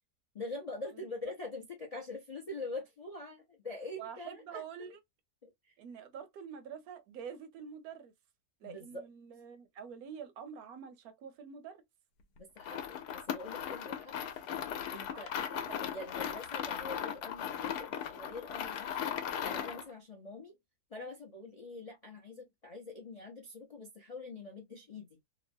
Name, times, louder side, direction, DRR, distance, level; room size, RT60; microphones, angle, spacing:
voice 1, 0.3-4.9 5.4-5.8 8.6-9.0 12.4-14.3 14.9-15.3 15.8-19.2 19.4-20.5 20.9-25.1, left 2 dB, 50° left, 0.4 m, -44 dB
voice 2, 0.9-1.3 4.0-5.0 5.8-8.1 8.6-11.8 15.1-15.9, right 7 dB, 75° right, 1.0 m, -47 dB
sound 1, 12.6-19.9, left 9 dB, 85° left, 1.1 m, -38 dB
2.9 x 2.1 x 2.6 m
omnidirectional pair, 1.7 m